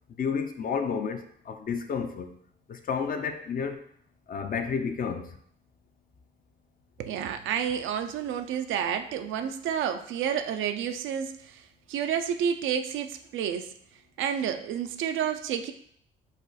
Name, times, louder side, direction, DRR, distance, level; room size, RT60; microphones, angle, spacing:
voice 1, 0.2-2.4 2.7-3.8 4.3-5.4, left 6 dB, 45° left, 0.6 m, -31 dB
voice 2, 7.0-13.7 14.2-15.7, right 8 dB, 80° right, 0.5 m, -30 dB
4.9 x 2.4 x 4.0 m
cardioid pair, 90°, 20 cm